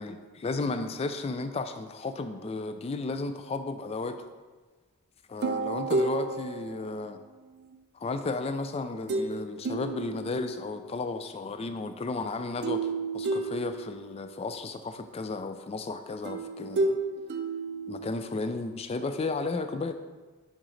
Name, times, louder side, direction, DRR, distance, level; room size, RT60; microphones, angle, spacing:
voice 1, 0.0-4.3 5.3-7.2 7.9-12.9 13.1-17.0 17.9-19.9, left 3 dB, 30° left, 9 dB, 0.3 m, -33 dB
sound 1, 5.4-7.7 9.1-9.4 9.6-10.9 12.6-14.3 16.2-18.5, right 3 dB, 50° right, 0.5 m, -32 dB
6.3 x 4.9 x 3.2 m, 1.4 s
head